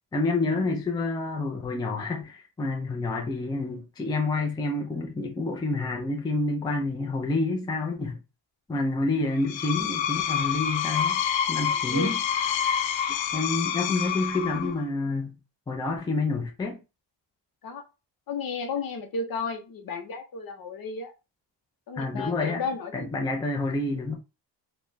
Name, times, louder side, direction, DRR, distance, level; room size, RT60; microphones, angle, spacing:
voice 1, 0.1-8.2 8.7-11.2 11.5-12.2 13.3-15.4 15.7-16.8 22.0-22.6 22.9-24.1, left 3 dB, 10° left, 0.4 m, -28 dB
Screech, 9.3-14.8, left 8 dB, 80° left, 0.6 m, -28 dB
voice 2, 11.6-12.1 17.6-17.8 18.3-21.1 21.9-23.1, left 4 dB, 50° left, 0.8 m, -33 dB
4.0 x 2.2 x 3.1 m
cardioid pair, 165°, 44 cm